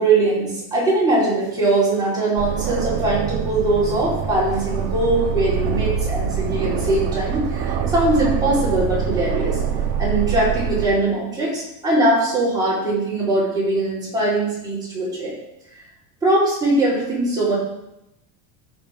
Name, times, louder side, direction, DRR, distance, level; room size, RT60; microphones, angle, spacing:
voice 1, 0.0-9.6 10.0-15.3 16.2-17.6, right 2 dB, 10° right, -9 dB, 4.4 m, -21 dB
Aircraft, 2.4-10.9, right 7 dB, 55° right, 1.3 m, -24 dB
14.0 x 6.4 x 3.8 m, 0.86 s
cardioid pair, 170°, 43 cm